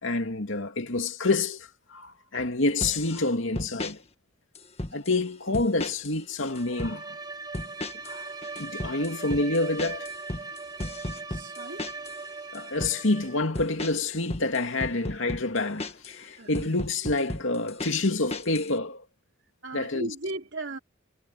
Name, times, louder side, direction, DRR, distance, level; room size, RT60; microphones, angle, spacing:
voice 1, 0.0-4.0 4.9-7.2 8.1-8.3 8.6-10.1 12.5-19.0 19.7-20.1, left 2 dB, 85° left, 2.5 m, -28 dB
sound 1, 2.8-3.2 3.6-4.0 4.6-5.2 5.5-6.2 6.4-7.0 7.5-8.2 8.4-12.2 12.5-13.0 13.6-16.2 16.5-18.7, left 1 dB, 30° left, 1.8 m, -35 dB
Bowed string instrument, 6.5-13.6, right 4 dB, 20° right, 1.1 m, -40 dB
voice 2, 11.3-11.8 16.4-16.7 19.6-20.8, right 2 dB, 70° right, 2.9 m, -36 dB
head